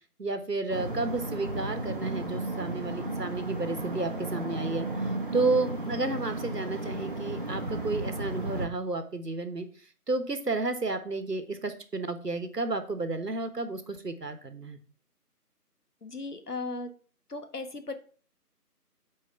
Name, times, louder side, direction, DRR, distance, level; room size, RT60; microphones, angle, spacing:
voice 1, 0.2-4.9 5.3-9.7 10.1-14.8, right 3 dB, 85° right, 9 dB, 1.4 m, -31 dB
sound 1, 0.7-8.7, right 2 dB, 35° right, 1.0 m, -34 dB
voice 2, 16.0-16.9 17.3-17.9, left 3 dB, 75° left, 8 dB, 1.3 m, -36 dB
6.8 x 4.7 x 5.6 m, 0.41 s
figure-of-eight pair, 160°, 47 cm